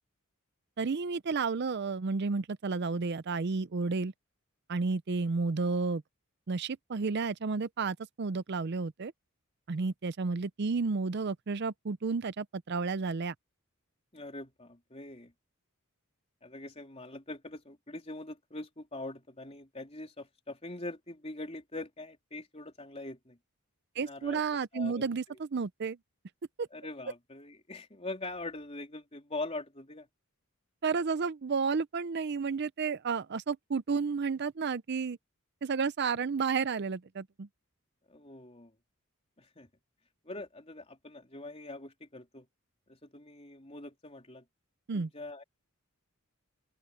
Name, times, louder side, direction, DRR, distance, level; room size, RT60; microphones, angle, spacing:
voice 1, 0.8-4.1 4.7-6.0 6.5-9.1 9.7-13.3 24.0-26.0 26.6-26.7 30.8-35.2 35.6-37.5 44.9-45.1, right 4 dB, 50° right, 0.5 m, -31 dB
voice 2, 14.1-15.3 16.4-23.4 24.0-24.4 24.7-25.1 26.7-30.1 38.1-38.7 39.4-39.7 40.3-42.5 42.9-44.4 44.9-45.4, left 2 dB, 30° left, 3.5 m, -43 dB
open air
head